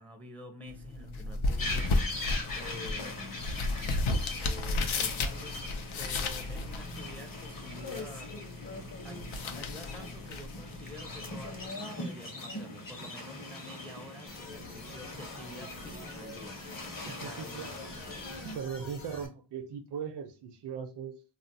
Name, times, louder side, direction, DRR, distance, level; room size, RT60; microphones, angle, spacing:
voice 1, 0.0-3.6 4.4-5.5 6.0-8.3 9.0-9.2 9.5-16.6 17.0-17.8, left 1 dB, 5° left, 0.4 m, -48 dB
sound 1, 0.7-11.7, left 2 dB, 90° left, 0.6 m, -34 dB
sound 2, 1.6-18.6, left 2 dB, 45° left, 0.9 m, -41 dB
sound 3, 14.3-19.3, left 2 dB, 70° left, 1.0 m, -47 dB
voice 2, 17.0-17.7 18.4-21.2, right 7 dB, 65° right, 0.5 m, -39 dB
2.4 x 2.0 x 3.8 m
wide cardioid pair, 90°, 47 cm